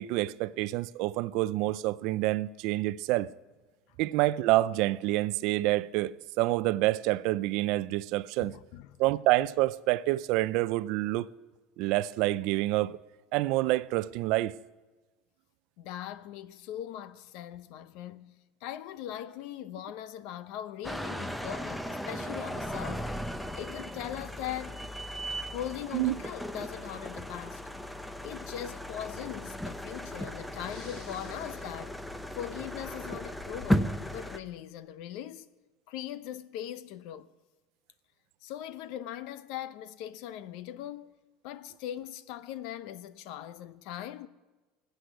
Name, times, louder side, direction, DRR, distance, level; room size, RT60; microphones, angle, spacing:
voice 1, 0.0-3.3 4.0-8.5 9.0-11.3 11.8-13.0 13.3-14.5 25.9-26.1, right 17 dB, 65° right, 0.5 m, -27 dB
voice 2, 8.4-9.0 15.8-18.3 18.6-23.1 23.6-24.9 25.5-27.6 28.2-32.0 32.3-35.5 35.9-37.3 38.4-41.1 41.4-44.3, left 11 dB, 65° left, 0.8 m, -40 dB
sound 1, 20.8-34.4, equal, 5° left, 0.7 m, -36 dB
Breathing, 30.5-32.5 32.7-33.8, left 4 dB, 40° left, 2.7 m, -51 dB
20.0 x 8.1 x 8.1 m
cardioid pair, 140°, 0 cm